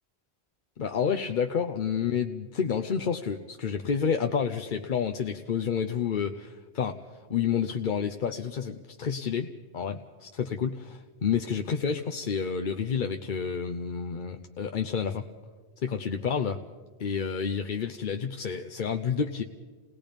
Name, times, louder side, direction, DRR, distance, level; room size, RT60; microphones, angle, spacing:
voice 1, 0.8-7.0 7.3-15.3 15.8-16.6 17.0-19.4, left 7 dB, 50° left, 6 dB, 0.8 m, -29 dB
28.5 x 19.0 x 5.3 m, 1.5 s
omnidirectional pair, 1.1 m